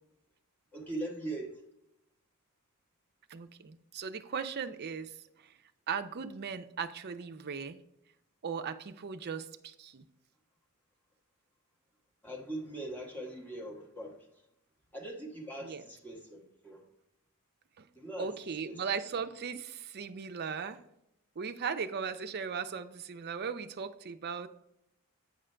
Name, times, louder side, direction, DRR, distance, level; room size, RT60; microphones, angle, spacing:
voice 1, 0.7-1.6 12.2-14.3 14.9-16.9 17.9-18.3 18.6-18.8, right 1 dB, 10° left, -2 dB, 1.4 m, -41 dB
voice 2, 3.3-5.5 5.9-7.8 8.4-10.0 15.6-15.8 17.8-17.9 18.2-20.8 21.4-24.5, right 6 dB, 45° right, 9 dB, 0.5 m, -38 dB
8.7 x 5.0 x 3.3 m, 0.83 s
head